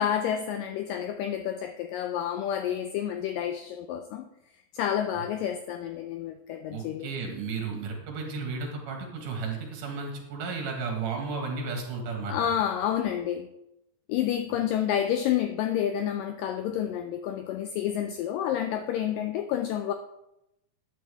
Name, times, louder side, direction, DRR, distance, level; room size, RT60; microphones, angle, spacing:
voice 1, 0.0-4.2 4.7-7.1 12.3-13.5 14.1-19.9, left 10 dB, 85° left, 7 dB, 1.9 m, -29 dB
voice 2, 6.7-12.5, right 4 dB, 60° right, 2 dB, 3.0 m, -33 dB
12.5 x 9.3 x 3.5 m, 0.87 s
omnidirectional pair, 4.4 m